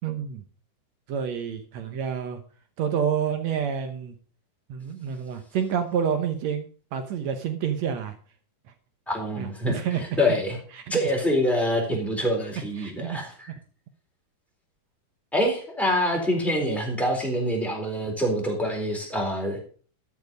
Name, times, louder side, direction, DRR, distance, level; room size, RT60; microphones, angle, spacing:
voice 1, 0.0-0.4 1.1-2.4 2.8-4.1 4.7-8.2 9.4-10.1 11.9-12.0 12.8-13.2 16.6-16.7, right 7 dB, 85° right, 7 dB, 1.5 m, -28 dB
voice 2, 9.1-10.6 10.9-13.5 15.3-19.6, equal, ahead, -1 dB, 3.5 m, -26 dB
13.0 x 7.4 x 5.3 m, 0.42 s
omnidirectional pair, 4.5 m